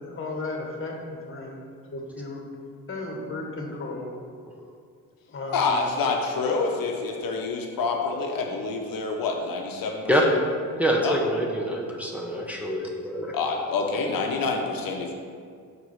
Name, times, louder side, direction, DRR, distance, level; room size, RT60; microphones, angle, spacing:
voice 1, 0.0-1.5 1.9-2.4 2.9-4.1 5.3-5.8, left 2 dB, 35° left, 0 dB, 1.5 m, -34 dB
voice 2, 5.5-10.1 11.0-11.2 13.3-15.1, left 4 dB, 65° left, 1 dB, 0.9 m, -27 dB
voice 3, 10.8-13.4, equal, 5° right, -2 dB, 0.9 m, -25 dB
5.3 x 4.8 x 6.2 m, 2.2 s
cardioid pair, 80°, 36 cm